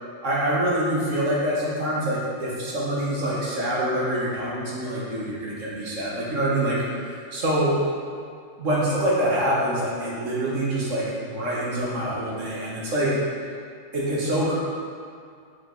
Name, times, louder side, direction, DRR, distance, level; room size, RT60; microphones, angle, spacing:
voice 1, 0.2-7.7 8.6-13.2 13.9-14.6, right 1 dB, 45° right, -6 dB, 1.4 m, -25 dB
5.4 x 4.9 x 3.8 m, 2.3 s
omnidirectional pair, 2.0 m